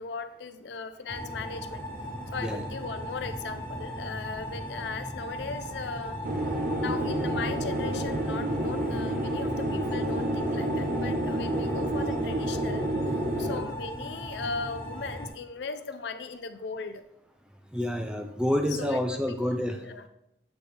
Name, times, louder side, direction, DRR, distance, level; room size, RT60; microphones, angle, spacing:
voice 1, 0.0-1.8 2.3-6.2 6.8-17.0 18.7-19.4 19.8-20.0, left 4 dB, 75° left, 10 dB, 0.5 m, -38 dB
sound 1, 1.1-15.3, equal, 15° left, 1.5 m, -38 dB
voice 2, 2.3-2.7 13.4-13.6 17.7-19.8, left 1 dB, 5° right, 4 dB, 0.4 m, -29 dB
sound 2, 6.2-13.6, right 1 dB, 50° right, 0.9 m, -29 dB
8.1 x 4.2 x 3.3 m, 0.80 s
head